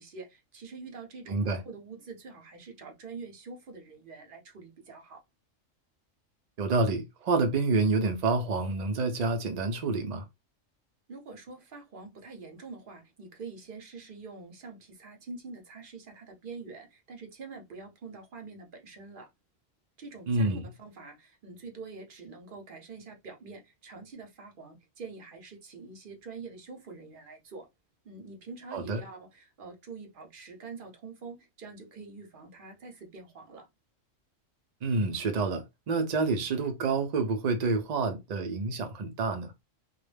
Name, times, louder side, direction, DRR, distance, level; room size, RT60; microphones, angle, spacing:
voice 1, 0.0-5.2 11.1-19.3 20.0-27.7 28.0-33.7, right 4 dB, 50° right, 0.8 m, -45 dB
voice 2, 6.6-10.2 20.3-20.6 28.7-29.0 34.8-39.5, right 3 dB, 80° right, 0.3 m, -28 dB
2.3 x 2.1 x 3.2 m
omnidirectional pair, 1.3 m